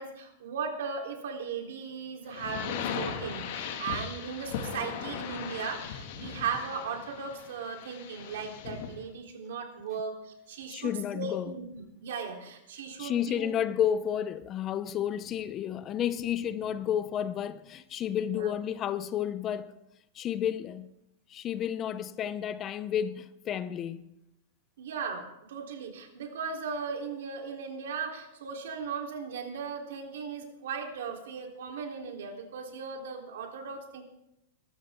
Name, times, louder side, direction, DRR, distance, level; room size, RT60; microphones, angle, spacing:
voice 1, 0.0-13.5 18.3-18.5 24.8-34.0, right 5 dB, 80° right, 3.9 m, -37 dB
sound 1, 2.3-9.0, left 7 dB, 55° left, 2.3 m, -38 dB
voice 2, 10.7-11.5 13.0-19.7 20.2-20.9 21.3-24.1, left 9 dB, 25° left, 0.6 m, -31 dB
23.0 x 13.5 x 3.8 m
supercardioid pair, 165°, 0 cm